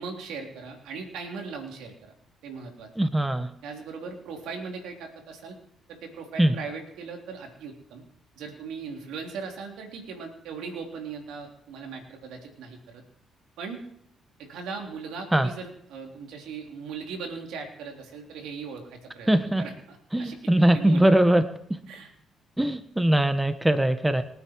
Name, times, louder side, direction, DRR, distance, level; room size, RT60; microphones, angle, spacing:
voice 1, 0.0-2.1 2.4-2.9 3.6-5.6 5.9-8.0 8.4-13.0 13.6-13.9 14.4-21.1 21.9-22.1, right 5 dB, 80° right, 2 dB, 3.6 m, -39 dB
voice 2, 3.0-3.5 6.4-6.5 15.3-15.5 19.3-19.6 20.1-21.4 22.6-24.2, right 1 dB, 10° right, 10 dB, 1.3 m, -21 dB
27.0 x 9.4 x 4.8 m, 0.69 s
supercardioid pair, 65°, 0 cm